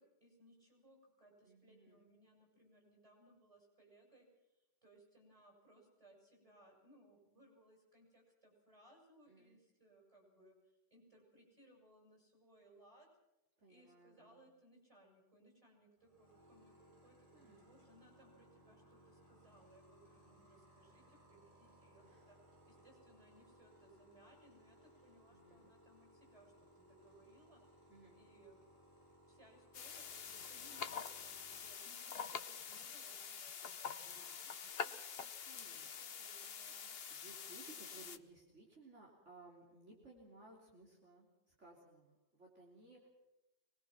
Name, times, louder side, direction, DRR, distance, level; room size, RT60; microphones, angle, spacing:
voice 1, 0.0-13.1 13.7-27.6 28.1-28.6 29.2-35.0 35.5-36.9, right 1 dB, 25° right, 0 dB, 8.2 m, -66 dB
voice 2, 1.4-2.1 9.3-9.6 13.6-14.4 17.3-17.7 22.0-22.4 25.3-25.7 27.9-28.2 34.0-34.4 35.4-35.9 36.6-36.8 37.1-43.2, right 3 dB, 65° right, -2 dB, 3.6 m, -61 dB
sound 1, 16.0-31.7, equal, 85° right, 6.0 m, -65 dB
sound 2, 29.7-38.2, left 6 dB, 55° left, 1.1 m, -46 dB
24.0 x 21.5 x 6.0 m, 0.95 s
omnidirectional pair, 1.3 m